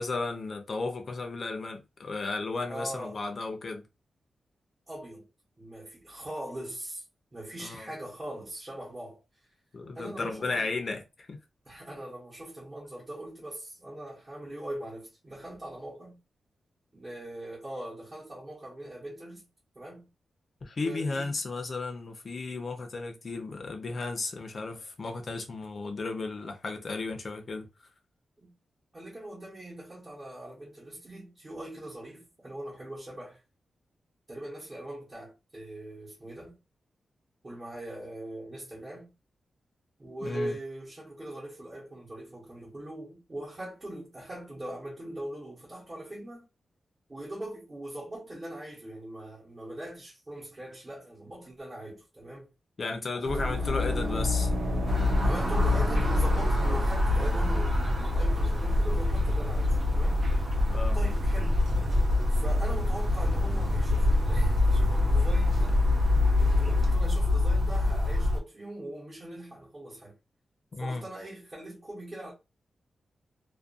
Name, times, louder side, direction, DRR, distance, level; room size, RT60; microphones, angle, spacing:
voice 1, 0.0-3.9 7.6-7.9 9.7-11.4 20.6-27.7 40.2-40.5 52.8-54.5 60.7-61.0 70.7-71.0, left 3 dB, 40° left, 0.6 m, -34 dB
voice 2, 2.7-3.2 4.9-5.3 5.6-7.0 7.3-9.2 9.9-10.7 11.7-16.2 16.9-19.5 19.7-20.1 20.8-21.4 28.4-28.5 28.9-33.4 34.3-36.6 37.4-39.1 40.0-46.5 47.1-52.5 53.1-53.5 55.2-60.3 60.9-61.6 62.3-65.8 66.4-70.2 70.8-72.3, right 1 dB, 25° right, 0.9 m, -41 dB
sound 1, 53.3-67.0, equal, 50° right, 0.6 m, -32 dB
sound 2, 54.9-68.4, left 2 dB, 85° right, 1.0 m, -25 dB
2.3 x 2.2 x 2.5 m
wide cardioid pair, 155°, 0 cm